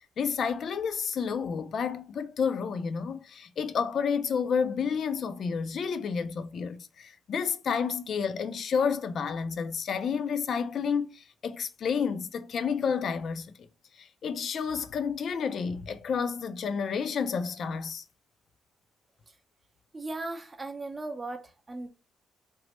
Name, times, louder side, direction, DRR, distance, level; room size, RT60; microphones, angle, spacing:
voice 1, 0.2-13.5 14.0-18.0, left 6 dB, 60° left, 0.4 m, -30 dB
voice 2, 19.9-21.9, right 2 dB, 25° right, 0.5 m, -37 dB
3.0 x 2.1 x 2.9 m
cardioid pair, 90°, 0 cm